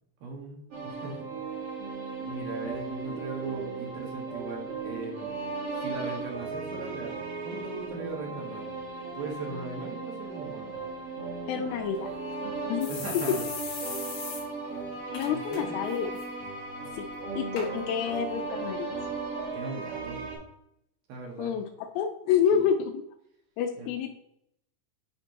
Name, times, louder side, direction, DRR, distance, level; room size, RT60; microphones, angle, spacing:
voice 1, 0.2-1.3 2.2-5.3 5.8-8.7 9.1-10.7 12.9-13.4 13.8-14.0 14.8-14.9 15.3-15.8 19.5-20.2 21.1-21.5 22.5-22.6 23.8-23.9, right 4 dB, 70° right, 0 dB, 2.4 m, -38 dB
sound 1, 0.7-20.4, right 3 dB, 50° right, 2.0 m, -36 dB
voice 2, 11.5-12.1 12.7-13.0 13.3-13.4 15.1-16.1 16.9-17.1 17.4-18.9 21.4-23.0 23.6-24.1, left 8 dB, 90° left, 2 dB, 3.1 m, -28 dB
sound 2, 11.9-12.0 12.3-12.4 12.8-14.4 14.8-14.9 15.1-15.6 15.9-16.2 16.9-17.0 17.6-17.7 18.4-18.5, left 5 dB, 65° left, 2.5 m, -38 dB
9.7 x 4.3 x 2.9 m, 0.76 s
omnidirectional pair, 5.6 m